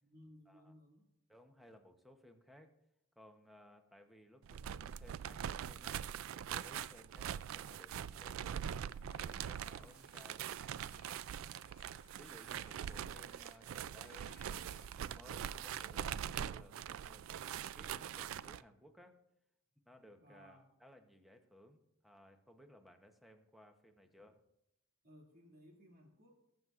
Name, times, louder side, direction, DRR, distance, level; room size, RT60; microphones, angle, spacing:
voice 1, 0.0-1.1 9.7-10.2 17.2-17.5 20.2-20.6 25.0-26.4, equal, 50° right, 0 dB, 2.3 m, -61 dB
voice 2, 1.3-2.7 3.2-8.7 9.2-10.8 12.1-19.2 19.9-24.4, equal, ahead, 6 dB, 0.8 m, -60 dB
sound 1, 4.4-18.6, right 9 dB, 75° right, 0.3 m, -43 dB
sound 2, 8.9-15.4, left 5 dB, 50° left, 1.2 m, -66 dB
20.0 x 7.7 x 2.5 m, 0.84 s
head